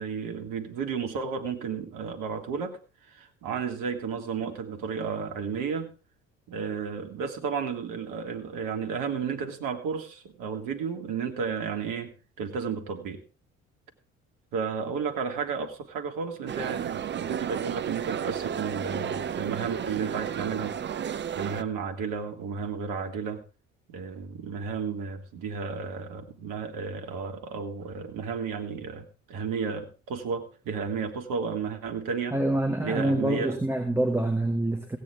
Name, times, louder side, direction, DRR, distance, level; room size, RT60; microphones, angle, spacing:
voice 1, 0.0-2.8 3.1-5.9 6.5-13.2 14.5-20.8 21.3-23.4 23.9-32.4 32.8-33.6, right 6 dB, 55° right, 5 dB, 2.1 m, -33 dB
sound 1, 16.5-21.6, right 8 dB, 30° right, 0.7 m, -32 dB
voice 2, 32.3-35.0, right 1 dB, 5° right, 4 dB, 1.9 m, -26 dB
16.5 x 9.4 x 3.6 m, 0.35 s
figure-of-eight pair, 55°, 38 cm